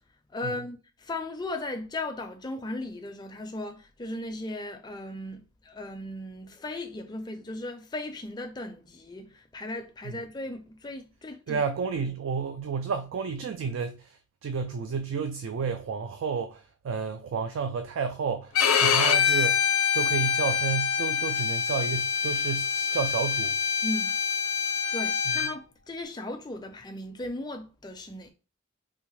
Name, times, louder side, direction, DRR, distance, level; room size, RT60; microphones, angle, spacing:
voice 1, 0.3-11.6 23.8-24.2 24.9-28.3, left 2 dB, 20° left, 0.4 m, -37 dB
voice 2, 11.5-19.6 19.9-23.6 25.3-25.5, right 5 dB, 65° right, 0.3 m, -31 dB
Bowed string instrument, 18.5-25.5, left 7 dB, 90° left, 0.5 m, -25 dB
3.5 x 2.1 x 3.0 m
head